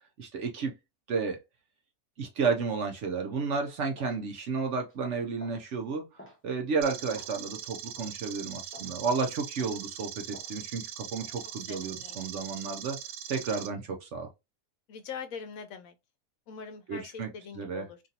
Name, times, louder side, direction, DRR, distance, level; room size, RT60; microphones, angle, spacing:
voice 1, 0.2-0.7 1.1-1.4 2.2-13.0 13.3-14.3 16.9-17.3 17.6-17.8, right 5 dB, 60° right, 0.9 m, -32 dB
sound 1, 3.2-3.4 4.0-4.2 4.7-5.0 5.4-5.6 6.2-6.4 7.1-7.4 8.0-8.1 8.7-9.0 9.6-9.8 10.3-10.6 11.2-11.4 12.1-12.3, left 1 dB, 15° left, 0.5 m, -52 dB
sound 2, 6.8-13.7, right 9 dB, 80° right, 0.5 m, -41 dB
voice 2, 11.7-12.2 14.9-15.9 16.5-18.0, left 6 dB, 70° left, 1.0 m, -42 dB
2.9 x 2.6 x 2.7 m
omnidirectional pair, 1.6 m